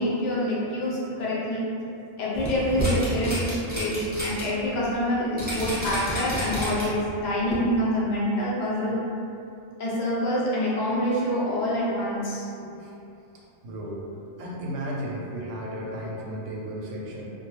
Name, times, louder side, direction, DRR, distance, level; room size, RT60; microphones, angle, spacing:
voice 1, 0.0-1.6 2.2-9.0 9.8-12.5, equal, 70° left, -6 dB, 0.4 m, -26 dB
sound 1, 2.4-4.4 4.8-4.9 5.4-7.0 7.5-7.6, right 1 dB, 10° right, 0.9 m, -30 dB
voice 2, 13.6-14.0 14.4-17.3, equal, 70° right, -4 dB, 0.9 m, -34 dB
2.5 x 2.2 x 3.1 m, 2.7 s
omnidirectional pair, 1.4 m